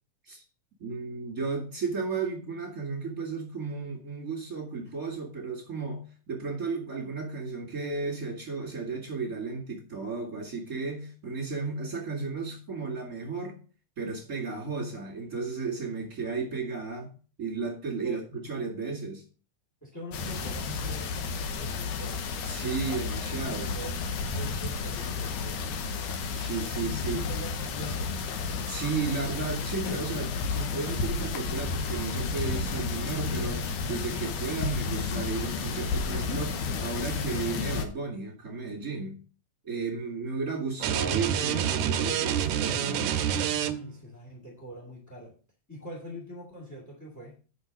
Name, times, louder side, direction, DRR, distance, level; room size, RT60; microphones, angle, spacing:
voice 1, 0.8-13.6 14.0-17.1 17.4-19.2 22.4-23.7 26.3-27.2 28.7-39.2 39.6-43.2, right 4 dB, 30° right, -4 dB, 2.1 m, -34 dB
voice 2, 19.8-22.2 23.5-25.7 26.8-28.2 43.8-45.3 45.7-47.4, equal, 10° left, -2 dB, 1.0 m, -44 dB
sound 1, 20.1-37.9, left 4 dB, 75° left, 2.4 m, -32 dB
sound 2, 40.8-44.0, right 9 dB, 75° right, 1.8 m, -28 dB
8.6 x 6.0 x 5.2 m, 0.38 s
omnidirectional pair, 4.1 m